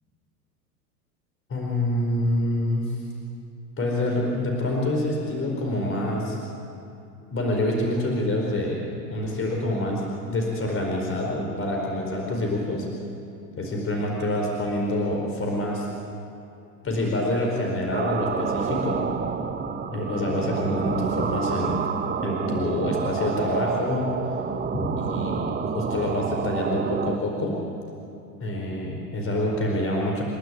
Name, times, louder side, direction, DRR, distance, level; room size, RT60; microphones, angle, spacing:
voice 1, 1.5-3.0 3.8-6.4 7.3-8.8 9.1-12.9 13.6-15.9 16.8-19.0 19.9-21.8 22.2-24.1 24.7-25.4 25.7-27.6 28.4-30.2, left 1 dB, 25° left, 0 dB, 4.6 m, -26 dB
sound 1, 17.9-27.2, right 6 dB, 20° right, 1.3 m, -29 dB
29.5 x 12.0 x 9.8 m, 2.7 s
hypercardioid pair, 90°, 48 cm